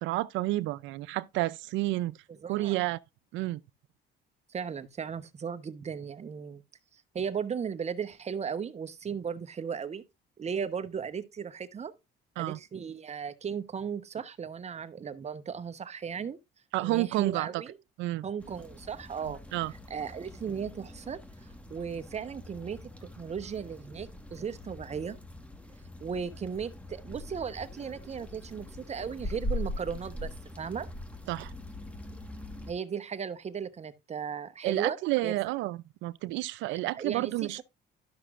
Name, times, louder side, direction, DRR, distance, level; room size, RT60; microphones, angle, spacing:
voice 1, 0.0-2.2 2.5-3.0 3.3-3.6 12.4-12.6 16.7-17.6 18.0-18.3 19.2-19.7 31.3-31.5 34.6-37.6, right 18 dB, 80° right, 0.5 m, -30 dB
voice 2, 2.3-2.8 4.5-6.6 6.9-10.0 10.4-11.9 12.4-16.4 16.8-17.8 18.2-19.4 19.9-21.2 21.7-25.2 26.0-30.3 30.6-30.9 32.7-35.0 35.2-35.3 36.7-37.6, right 7 dB, 35° right, 0.9 m, -36 dB
sound 1, 18.4-32.7, left 1 dB, 5° left, 1.4 m, -42 dB
12.0 x 5.9 x 2.4 m
cardioid pair, 90°, 19 cm